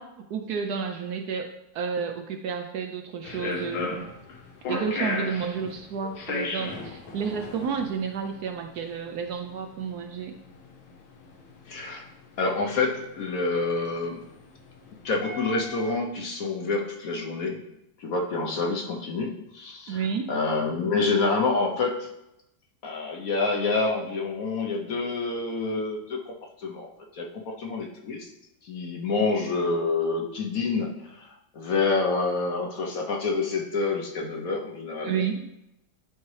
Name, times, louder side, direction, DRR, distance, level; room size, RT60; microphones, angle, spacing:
voice 1, 0.0-1.5 1.7-4.0 4.7-10.4 19.9-20.3 35.0-35.5, right 6 dB, 70° right, 5 dB, 1.0 m, -31 dB
sound 1, 3.2-15.9, left 3 dB, 85° left, 1.7 m, -36 dB
voice 2, 11.7-12.1 12.4-14.2 15.0-17.6 18.0-22.1 22.8-28.3 28.6-35.3, left 3 dB, 60° left, 1 dB, 1.1 m, -28 dB
10.5 x 4.2 x 3.2 m, 0.85 s
omnidirectional pair, 2.0 m